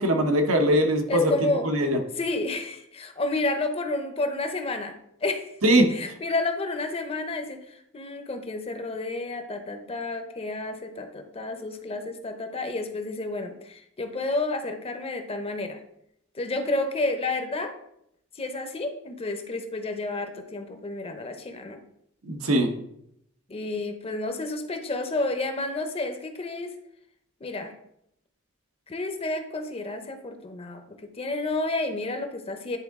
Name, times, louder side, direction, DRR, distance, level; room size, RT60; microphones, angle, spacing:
voice 1, 0.0-1.3 1.6-2.0 5.6-5.9 22.2-22.7, right 1 dB, 90° right, 4 dB, 1.0 m, -21 dB
voice 2, 1.1-1.7 2.2-4.9 5.2-5.5 5.9-15.8 16.3-17.7 18.4-21.8 23.5-26.7 27.4-27.7 28.9-32.8, left 2 dB, 30° left, 7 dB, 0.7 m, -30 dB
10.0 x 3.8 x 3.6 m, 0.75 s
head